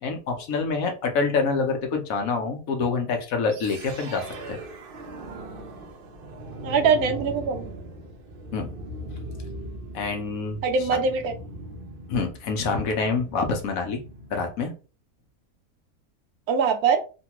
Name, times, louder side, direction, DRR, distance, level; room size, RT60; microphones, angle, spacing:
voice 1, 0.0-4.6 8.5-8.7 9.9-10.6 10.9-11.0 12.1-14.0 14.3-14.7, left 4 dB, 70° left, 4 dB, 1.1 m, -26 dB
sound 1, 3.5-14.6, right 1 dB, 55° right, 0.7 m, -39 dB
voice 2, 6.6-7.7 10.6-11.3 16.5-17.0, right 5 dB, 85° right, 7 dB, 1.1 m, -22 dB
3.2 x 2.3 x 2.9 m, 0.33 s
omnidirectional pair, 1.5 m